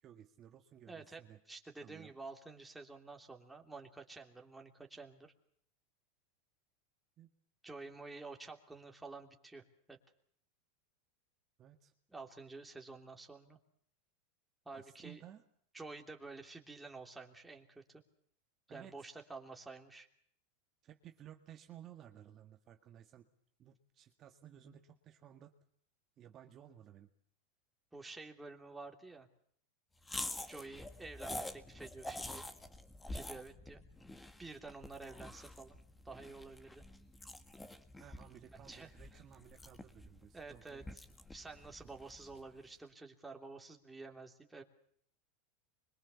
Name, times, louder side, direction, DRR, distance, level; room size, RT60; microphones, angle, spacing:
voice 1, 0.0-1.4 1.8-2.1 7.2-7.3 11.6-11.9 14.7-15.4 18.7-19.1 20.8-23.3 23.6-25.6 26.2-27.1 38.0-40.8, right 10 dB, 35° right, 6 dB, 1.8 m, -56 dB
voice 2, 0.9-5.3 7.6-10.0 12.1-13.6 14.6-15.2 15.7-18.0 18.7-20.1 27.9-29.3 30.5-32.5 33.1-33.8 34.4-35.8 36.0-36.8 38.5-39.2 40.3-44.6, right 3 dB, 5° right, 3 dB, 3.1 m, -50 dB
sound 1, 30.0-42.5, left 1 dB, 10° left, 1.8 m, -47 dB
25.0 x 23.0 x 7.1 m, 0.63 s
supercardioid pair, 130°, 0 cm